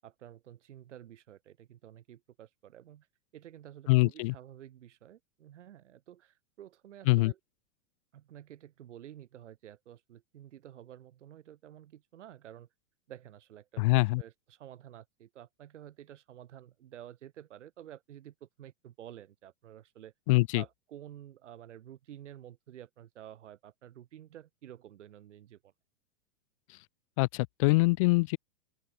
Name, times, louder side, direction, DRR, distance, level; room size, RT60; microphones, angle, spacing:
voice 1, 0.0-3.1 3.3-7.4 8.1-12.7 13.1-20.1 20.5-25.7, right 11 dB, 75° right, 6.4 m, -51 dB
voice 2, 3.9-4.3 7.1-7.3 13.8-14.2 20.3-20.6 27.2-28.4, left 24 dB, 30° left, 0.9 m, -24 dB
open air
supercardioid pair, 175°, 36 cm